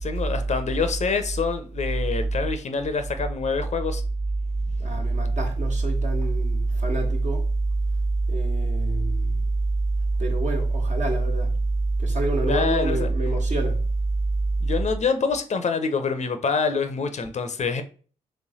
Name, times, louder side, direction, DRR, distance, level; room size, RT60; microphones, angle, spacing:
voice 1, 0.0-4.0 12.5-13.1 14.6-17.8, left 5 dB, 45° left, 0.6 m, -26 dB
voice 2, 4.8-7.4 8.3-9.3 10.2-11.5 12.0-13.8, right 2 dB, 50° right, 1.4 m, -24 dB
3.2 x 3.1 x 4.1 m
supercardioid pair, 50°, 16 cm